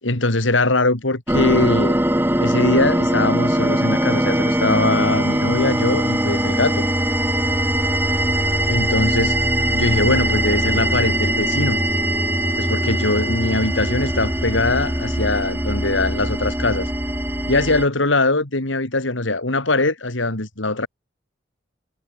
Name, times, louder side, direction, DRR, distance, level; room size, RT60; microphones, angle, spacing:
voice 1, 0.0-2.0 2.4-6.9 8.6-9.4 9.7-11.8 12.5-16.9 17.5-20.9, left 2 dB, 85° left, 3.2 m, -21 dB
sound 1, 1.3-17.9, right 1 dB, 10° right, 3.3 m, -21 dB
head